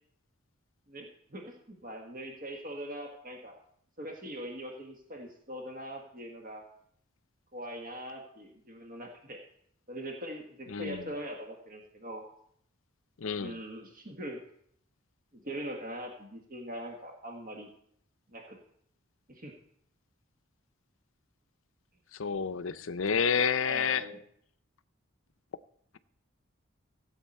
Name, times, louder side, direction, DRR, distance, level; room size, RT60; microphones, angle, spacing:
voice 1, 0.9-3.5 4.0-6.6 7.5-9.4 9.9-12.2 13.4-14.4 15.3-17.7 18.3-18.6 19.3-19.5 23.6-24.2, right 1 dB, 45° right, 1.5 m, -42 dB
voice 2, 10.7-11.1 13.2-13.6 22.1-24.1, left 6 dB, 70° left, 0.6 m, -29 dB
16.0 x 7.9 x 4.3 m
head